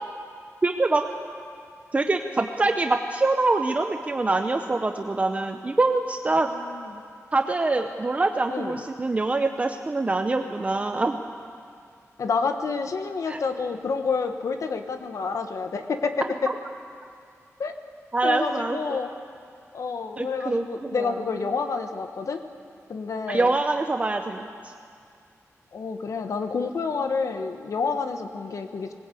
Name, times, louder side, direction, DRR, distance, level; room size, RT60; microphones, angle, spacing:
voice 1, 0.6-1.0 1.9-6.5 7.3-11.2 13.3-13.4 18.1-19.0 20.2-21.2 23.3-24.5, right 2 dB, 25° right, 6 dB, 0.7 m, -24 dB
voice 2, 6.3-7.0 8.5-8.8 12.2-16.5 17.6-17.7 18.2-19.1 19.7-22.4 22.9-23.6 25.7-28.9, left 4 dB, 75° left, 7 dB, 1.2 m, -29 dB
20.5 x 19.5 x 8.4 m, 2.3 s
wide cardioid pair, 175°, 5 cm